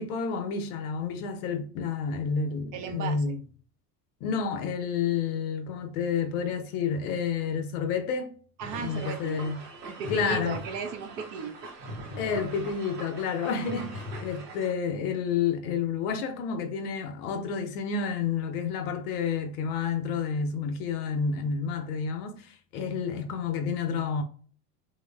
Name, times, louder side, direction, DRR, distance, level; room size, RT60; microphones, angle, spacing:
voice 1, 0.0-3.4 4.2-8.3 8.8-9.6 10.1-10.6 12.2-24.2, left 6 dB, 65° left, 0.6 m, -30 dB
voice 2, 2.7-3.3 8.6-9.4 9.8-11.6, right 6 dB, 45° right, 0.4 m, -36 dB
sound 1, 8.6-14.7, right 1 dB, 90° right, 0.7 m, -40 dB
3.0 x 2.0 x 2.2 m
hypercardioid pair, 85°, 48 cm